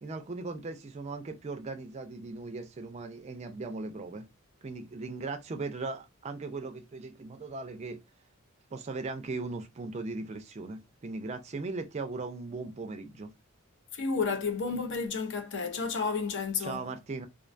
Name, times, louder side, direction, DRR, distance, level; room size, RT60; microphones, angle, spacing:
voice 1, 0.0-4.3 4.6-8.0 8.7-13.3 16.6-17.3, right 3 dB, 30° right, 0.3 m, -38 dB
voice 2, 13.9-16.9, left 4 dB, 55° left, 0.5 m, -31 dB
2.4 x 2.2 x 2.5 m
head